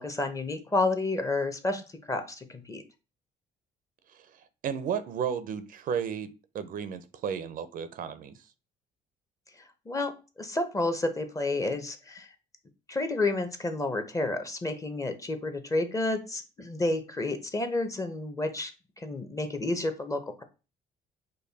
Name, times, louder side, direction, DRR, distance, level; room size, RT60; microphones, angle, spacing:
voice 1, 0.0-2.8 9.9-10.1 10.4-12.3 12.9-18.7 19.0-20.4, left 2 dB, 20° left, 8 dB, 0.7 m, -30 dB
voice 2, 4.6-8.3, right 7 dB, 55° right, 13 dB, 0.5 m, -33 dB
5.3 x 2.2 x 4.0 m, 0.31 s
cardioid pair, 110°, 17 cm